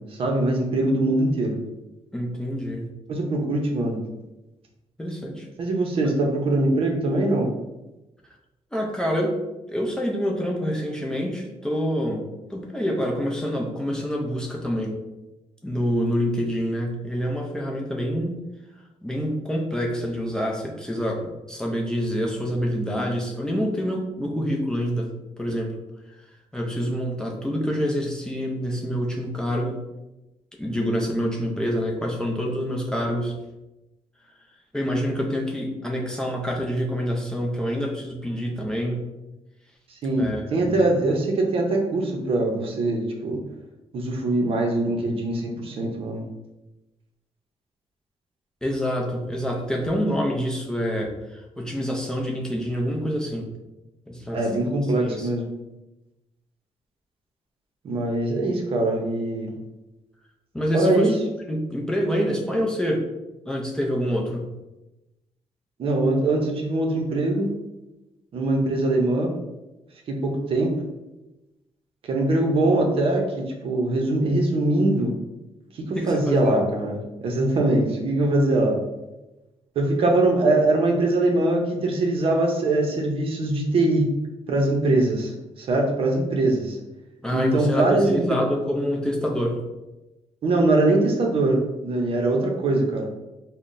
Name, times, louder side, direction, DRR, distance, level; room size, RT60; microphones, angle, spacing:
voice 1, 0.2-1.6 3.1-4.0 5.6-7.5 39.9-43.4 43.9-46.2 54.3-55.4 57.8-59.5 60.7-61.1 65.8-67.5 68.3-69.3 70.1-70.7 72.0-75.1 75.8-78.8 79.8-84.1 84.5-85.3 85.6-86.8 87.3-88.2 90.4-93.1, right 2 dB, 55° right, 1 dB, 0.7 m, -22 dB
voice 2, 2.1-2.9 5.0-5.5 8.7-9.4 9.7-12.2 12.5-15.0 15.6-18.4 19.0-25.1 25.4-25.7 26.5-29.8 30.6-33.3 34.7-39.0 40.2-40.9 48.6-53.5 54.1-54.4 55.0-55.3 60.5-61.1 61.5-63.0 63.5-64.5 75.9-76.6 87.2-89.6, equal, 5° left, -1 dB, 0.4 m, -26 dB
5.6 x 2.1 x 2.5 m, 1.0 s
cardioid pair, 145°, 11 cm